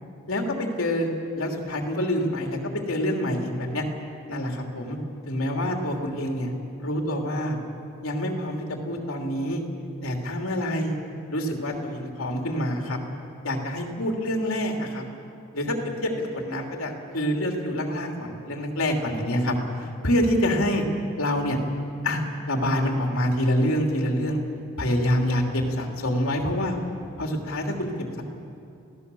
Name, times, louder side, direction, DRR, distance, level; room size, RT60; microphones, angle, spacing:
voice 1, 0.3-2.6 2.9-3.8 4.3-5.0 5.3-6.5 6.8-7.6 8.0-9.6 10.0-11.0 11.3-13.0 13.4-15.0 15.5-19.5 19.8-20.8 21.2-21.6 22.0-22.2 22.5-24.4 24.8-26.7 27.2-27.9, left 1 dB, 75° left, 2 dB, 2.9 m, -26 dB
27.5 x 17.0 x 7.0 m, 2.6 s
head